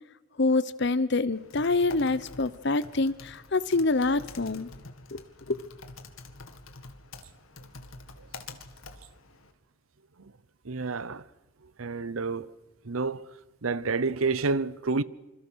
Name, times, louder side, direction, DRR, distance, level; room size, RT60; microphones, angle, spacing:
voice 1, 0.4-4.7 5.1-5.6, left 3 dB, 55° left, 0.9 m, -26 dB
Typing, 1.3-9.5, left 3 dB, 85° left, 2.1 m, -47 dB
voice 2, 10.6-11.2 11.8-12.5 12.8-13.3 13.6-15.0, right 4 dB, 90° right, 0.8 m, -29 dB
26.0 x 26.0 x 6.4 m
head